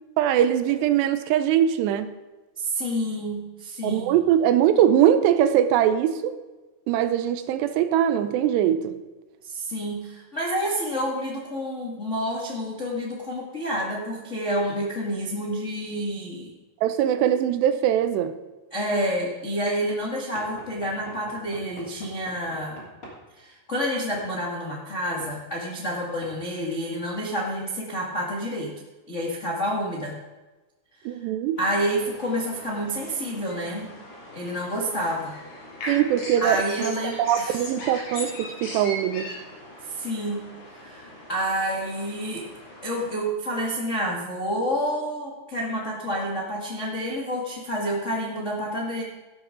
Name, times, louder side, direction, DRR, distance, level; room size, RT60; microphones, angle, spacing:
voice 1, 0.2-2.2 3.8-6.4 6.9-8.9 16.8-18.3 31.1-31.6 35.9-36.6 37.0-39.3, right 10 dB, 80° right, 10 dB, 2.8 m, -21 dB
voice 2, 2.6-4.1 9.4-16.5 18.7-22.8 23.4-28.7 29.1-30.2 31.6-33.9 34.3-35.3 36.4-37.6 39.8-40.4 40.7-42.5 42.8-49.0, equal, 50° left, -4 dB, 0.8 m, -29 dB
Knock / Wood, 20.4-23.2 24.1-24.3 25.2-25.4 26.2-26.4, equal, 25° left, 2.7 m, -44 dB
sound 1, 31.6-43.3, left 1 dB, 75° left, 6.8 m, -40 dB
14.5 x 12.0 x 3.8 m, 1.2 s
omnidirectional pair, 5.0 m